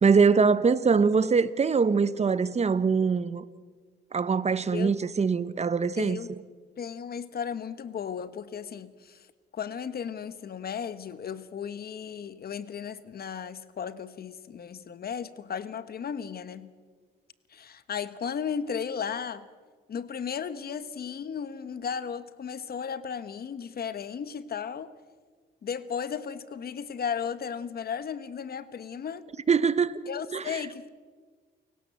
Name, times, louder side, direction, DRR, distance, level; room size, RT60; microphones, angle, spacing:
voice 1, 0.0-3.4 4.1-6.2 29.5-30.0 30.3-30.6, right 5 dB, 35° right, 1.0 m, -23 dB
voice 2, 6.0-6.3 6.8-9.3 9.5-16.7 17.5-19.5 19.9-24.9 25.6-29.3 30.1-30.9, left 7 dB, 50° left, 1.3 m, -35 dB
29.5 x 17.0 x 7.9 m
cardioid pair, 90°, 20 cm